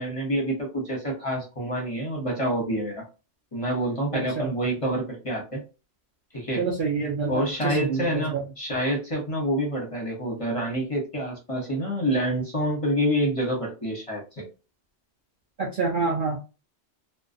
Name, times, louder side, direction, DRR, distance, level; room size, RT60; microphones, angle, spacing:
voice 1, 0.0-3.0 3.5-5.6 6.3-6.6 7.3-14.4, equal, 30° left, -1 dB, 0.7 m, -27 dB
voice 2, 4.1-4.5 6.6-8.4 15.6-16.4, right 4 dB, 60° right, -1 dB, 0.6 m, -27 dB
2.5 x 2.1 x 2.4 m, 0.31 s
omnidirectional pair, 1.2 m